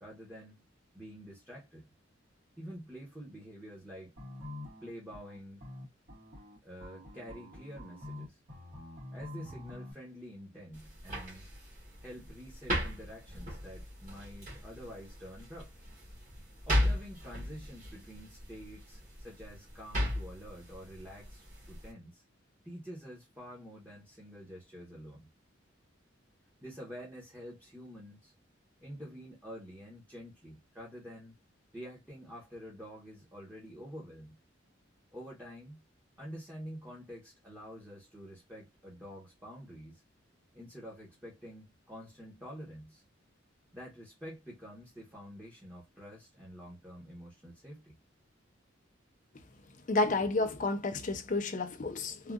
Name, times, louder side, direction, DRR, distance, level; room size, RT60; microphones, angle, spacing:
voice 1, 0.0-0.6 0.9-1.9 2.6-4.1 4.8-5.7 6.6-8.4 9.1-11.5 12.0-15.7 16.7-22.2 22.6-25.3 26.6-28.3 28.8-31.4 31.7-34.4 35.1-35.8 36.2-40.0 40.5-43.0 43.7-48.0, equal, 10° right, 1.0 m, -48 dB
sound 1, 4.2-9.9, left 1 dB, 65° right, 1.9 m, -46 dB
sound 2, 10.7-21.9, equal, 40° right, 1.8 m, -37 dB
voice 2, 49.9-52.3, left 2 dB, 40° left, 0.5 m, -31 dB
3.6 x 2.4 x 2.3 m
head